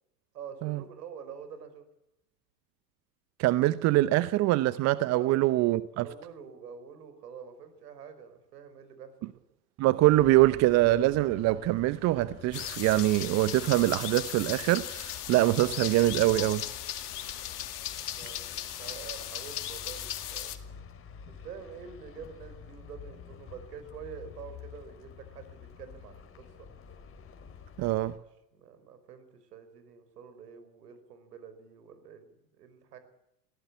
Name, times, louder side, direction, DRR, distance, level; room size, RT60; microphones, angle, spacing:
voice 1, 0.3-1.8 5.2-5.3 6.0-9.4 17.9-20.5 21.3-26.7 28.5-33.0, right 7 dB, 70° right, 4.7 m, -47 dB
voice 2, 3.4-6.1 9.8-16.6 27.8-28.1, right 16 dB, 35° right, 0.8 m, -24 dB
sound 1, 10.0-28.2, left 6 dB, 25° left, 4.0 m, -49 dB
sound 2, 12.5-20.6, left 12 dB, 65° left, 2.4 m, -37 dB
22.0 x 16.5 x 8.5 m
hypercardioid pair, 95°, 49 cm